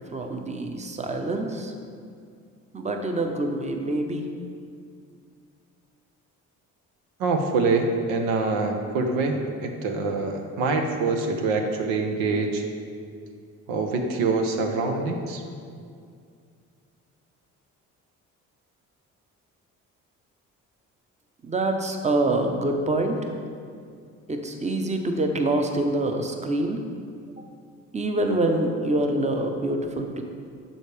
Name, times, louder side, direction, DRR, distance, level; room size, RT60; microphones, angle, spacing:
voice 1, 0.1-1.7 2.7-4.3 21.4-23.2 24.3-26.8 27.4-27.5 27.9-30.2, right 2 dB, 20° right, 4 dB, 0.8 m, -26 dB
voice 2, 7.2-12.6 13.7-15.4, right 3 dB, 80° right, 4 dB, 0.7 m, -25 dB
6.9 x 6.4 x 3.3 m, 2.3 s
supercardioid pair, 60°, 35 cm